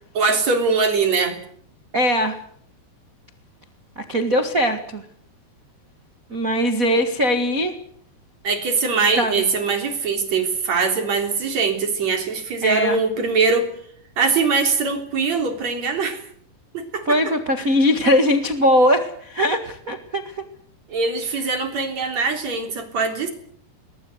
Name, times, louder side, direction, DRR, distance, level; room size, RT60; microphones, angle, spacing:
voice 1, 0.1-1.4 8.4-13.7 14.2-16.2 16.7-17.2 20.9-23.3, right 4 dB, 40° right, 5 dB, 4.6 m, -22 dB
voice 2, 1.9-2.4 3.9-5.0 6.3-7.7 9.1-9.3 12.6-13.0 17.0-20.4, equal, 65° right, 6 dB, 0.8 m, -20 dB
22.0 x 21.0 x 8.0 m, 0.63 s
omnidirectional pair, 4.9 m